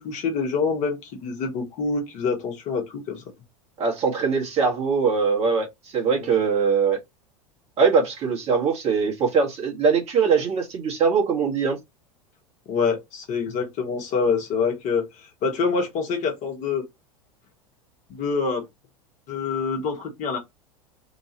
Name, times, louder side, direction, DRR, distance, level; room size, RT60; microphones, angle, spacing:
voice 1, 0.0-3.2 6.2-6.4 12.7-16.8 18.1-18.6 19.3-20.4, left 5 dB, 40° left, 1.3 m, -26 dB
voice 2, 3.8-5.7 5.9-7.0 7.8-11.8, right 5 dB, 35° right, 1.5 m, -22 dB
3.1 x 2.7 x 2.8 m
figure-of-eight pair, 85°, 19 cm